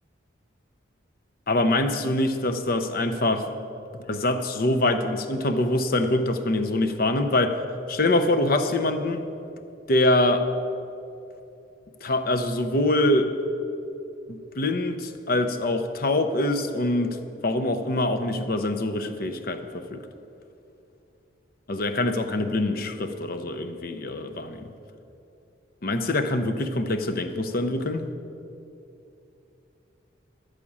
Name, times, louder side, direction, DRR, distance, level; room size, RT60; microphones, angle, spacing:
voice 1, 1.5-3.5 4.1-7.6 7.9-9.2 9.9-10.5 12.0-13.3 14.3-17.2 17.4-20.0 21.7-24.7 25.8-28.1, left 1 dB, 50° left, 9 dB, 0.7 m, -24 dB
12.0 x 5.0 x 8.6 m, 2.8 s
head